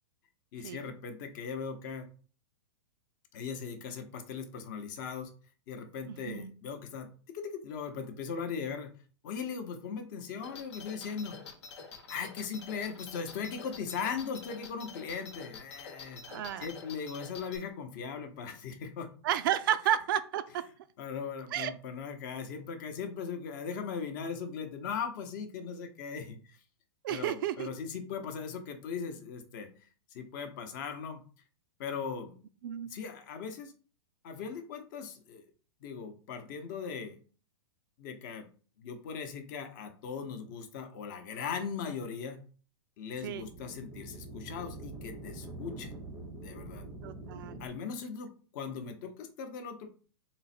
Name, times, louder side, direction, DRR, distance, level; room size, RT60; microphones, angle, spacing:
voice 1, 0.5-2.1 3.3-5.3 5.7-7.1 7.3-8.9 9.2-11.4 12.1-19.1 21.0-26.6 27.1-31.2 31.8-32.4 32.9-33.7 34.2-35.4 35.8-37.2 38.0-38.5 38.8-42.4 43.0-45.9 46.4-46.8 47.6-49.9, left 6 dB, 45° left, 6 dB, 0.8 m, -39 dB
voice 2, 6.1-6.5 16.3-16.7 19.2-20.6 21.5-21.7 27.0-27.7 32.6-32.9 43.2-43.5 47.0-47.6, right 10 dB, 50° right, 12 dB, 0.4 m, -31 dB
sound 1, 10.4-17.6, left 5 dB, 75° left, 1.0 m, -47 dB
sound 2, 43.1-47.7, right 2 dB, 5° right, 0.6 m, -45 dB
3.8 x 2.1 x 4.1 m, 0.39 s
hypercardioid pair, 150°, 14 cm